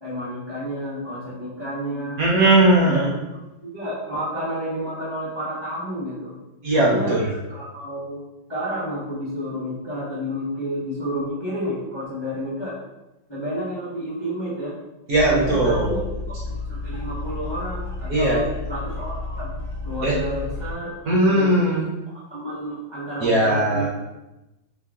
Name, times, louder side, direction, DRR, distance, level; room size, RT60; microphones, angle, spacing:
voice 1, 0.0-2.2 2.8-3.1 3.6-6.4 6.7-7.2 7.5-8.2 8.5-12.7 13.3-14.8 15.3-16.0 16.3-16.4 16.7-19.6 19.8-21.8 22.3-23.9, equal, 20° left, -8 dB, 0.6 m, -30 dB
voice 2, 2.2-3.1 6.6-7.3 15.1-16.0 18.1-18.5 20.0-20.2 21.1-21.8 23.2-23.9, right 1 dB, 55° right, -5 dB, 1.1 m, -18 dB
sound 1, 15.1-20.7, left 2 dB, 10° right, 1.1 m, -32 dB
4.5 x 2.8 x 3.6 m, 0.99 s
omnidirectional pair, 2.2 m